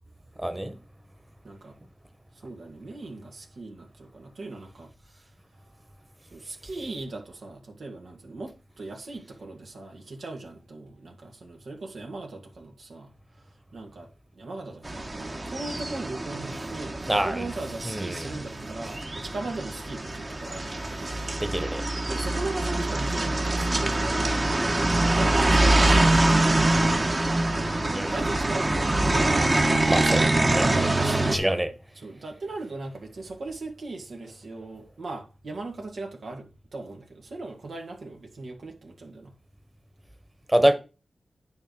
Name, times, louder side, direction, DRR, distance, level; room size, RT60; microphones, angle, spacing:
voice 1, 0.4-0.7 17.1-17.5 17.9-18.2 21.4-21.8 27.9-28.1 29.9-31.7 40.5-40.7, right 1 dB, 15° right, 1.5 m, -26 dB
voice 2, 1.4-1.8 2.4-5.3 5.6-5.7 6.3-14.1 14.3-21.4 22.1-27.4 27.7-28.8 30.7-31.5 31.9-39.3, right 2 dB, 75° right, 2.0 m, -38 dB
sound 1, 14.8-31.4, right 2 dB, 40° right, 1.5 m, -24 dB
9.5 x 3.5 x 6.4 m
cardioid pair, 40°, 0 cm